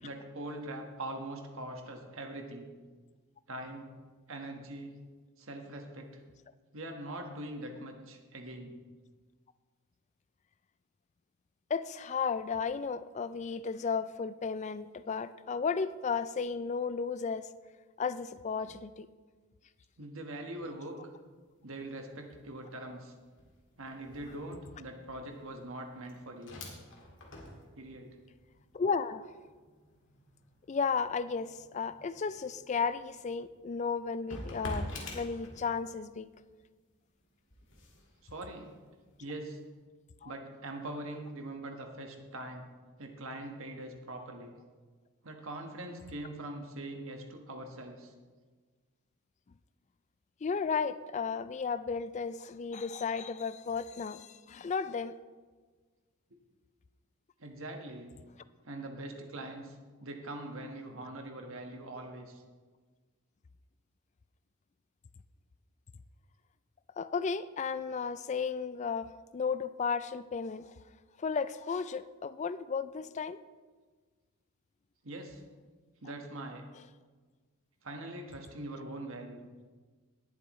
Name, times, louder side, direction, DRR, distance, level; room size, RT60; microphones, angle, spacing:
voice 1, 0.0-2.7 3.5-3.9 4.3-4.9 5.4-6.1 6.7-8.7 20.0-20.9 21.6-23.1 23.8-26.6 27.7-28.1 38.2-38.7 39.2-39.6 40.2-42.6 43.0-44.5 45.2-48.1 57.4-58.1 58.6-62.4 75.0-75.4 76.0-76.6 77.8-79.4, right 1 dB, 65° right, 3 dB, 1.4 m, -42 dB
voice 2, 11.7-17.5 18.0-19.1 28.7-29.3 30.7-36.3 40.2-40.3 50.4-55.2 67.0-70.7 71.2-73.4, left 5 dB, 30° left, 14 dB, 0.3 m, -34 dB
sound 1, 21.1-21.4 21.7-36.1 36.5-39.5, left 1 dB, 55° left, 2.1 m, -48 dB
18.5 x 8.0 x 3.1 m, 1.4 s
head